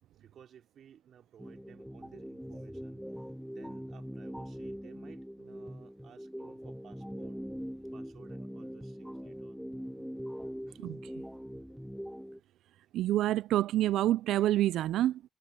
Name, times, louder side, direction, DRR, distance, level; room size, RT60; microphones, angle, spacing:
voice 1, 0.2-3.0 3.5-7.4 7.9-9.6 10.7-10.8, right 9 dB, 65° right, 3.7 m, -57 dB
sound 1, 1.4-12.4, equal, ahead, 1.7 m, -42 dB
voice 2, 10.8-11.1 12.9-15.2, right 13 dB, 85° right, 0.3 m, -27 dB
cardioid pair, 90°, 0 cm